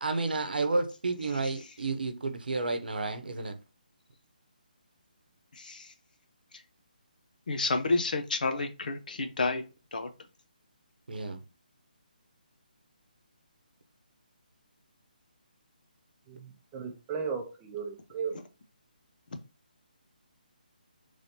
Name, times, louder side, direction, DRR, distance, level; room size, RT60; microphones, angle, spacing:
voice 1, 0.0-3.6 11.1-11.4, right 3 dB, 75° right, 0.8 m, -31 dB
voice 2, 5.5-5.9 6.5-6.6 7.5-9.6 9.9-10.1, left 3 dB, 65° left, 0.7 m, -30 dB
voice 3, 16.3-18.4, right 6 dB, 15° right, 0.7 m, -36 dB
5.2 x 3.3 x 2.8 m
hypercardioid pair, 160°, 5 cm